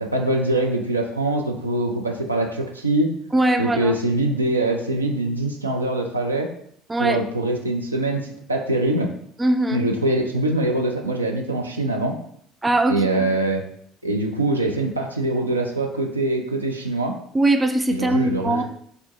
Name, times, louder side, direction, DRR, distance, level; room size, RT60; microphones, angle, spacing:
voice 1, 0.0-3.1 3.6-6.5 7.0-9.1 9.7-12.1 12.9-13.6 14.0-17.1 17.9-18.6, right 2 dB, 90° right, 2 dB, 0.4 m, -23 dB
voice 2, 3.3-3.9 6.9-7.2 9.4-9.9 12.6-13.3 17.3-18.6, right 1 dB, 15° right, 6 dB, 0.4 m, -21 dB
4.3 x 2.5 x 2.7 m, 0.65 s
figure-of-eight pair, 60°, 0 cm